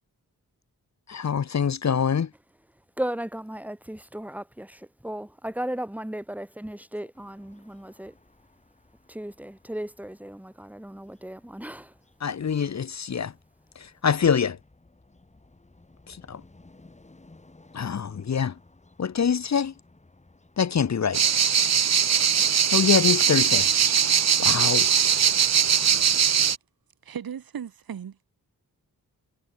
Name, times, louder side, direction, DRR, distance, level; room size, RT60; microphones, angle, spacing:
voice 1, 1.1-2.3 12.2-13.3 14.0-14.6 16.3-16.4 17.7-18.5 19.0-19.7 20.6-21.2 22.7-23.7 24.4-24.9, left 7 dB, 50° left, 1.0 m, -24 dB
voice 2, 3.0-8.1 9.1-11.9, right 1 dB, 5° right, 2.6 m, -35 dB
sound 1, 7.1-21.2, left 2 dB, 20° left, 7.3 m, -57 dB
sound 2, 21.1-26.6, right 8 dB, 50° right, 0.8 m, -21 dB
voice 3, 27.0-28.3, right 8 dB, 80° right, 1.9 m, -36 dB
wide cardioid pair, 175°, 36 cm